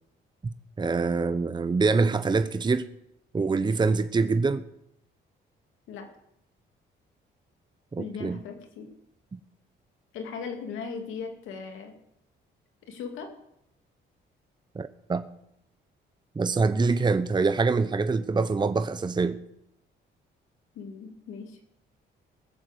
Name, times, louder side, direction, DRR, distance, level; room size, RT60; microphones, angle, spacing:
voice 1, 0.8-2.9 3.3-4.6 7.9-8.4 9.3-9.4 14.7-15.2 16.3-19.4, right 4 dB, 20° right, 11 dB, 0.8 m, -25 dB
voice 2, 8.0-8.9 10.1-12.0 12.8-13.3 20.7-21.6, left 5 dB, 90° left, 4 dB, 2.5 m, -38 dB
19.0 x 7.3 x 8.0 m, 0.80 s
cardioid pair, 90°, 20 cm